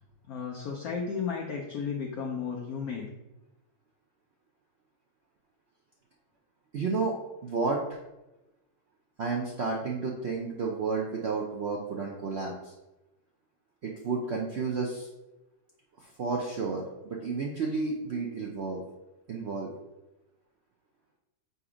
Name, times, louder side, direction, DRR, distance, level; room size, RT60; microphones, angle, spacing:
voice 1, 0.3-3.1, left 6 dB, 65° left, 0 dB, 1.0 m, -34 dB
voice 2, 6.7-7.1 7.4-8.0 9.2-12.7 13.8-15.1 16.0-18.8 19.3-19.7, right 4 dB, 85° right, -1 dB, 0.5 m, -31 dB
6.8 x 2.8 x 4.9 m, 1.0 s
omnidirectional pair, 2.0 m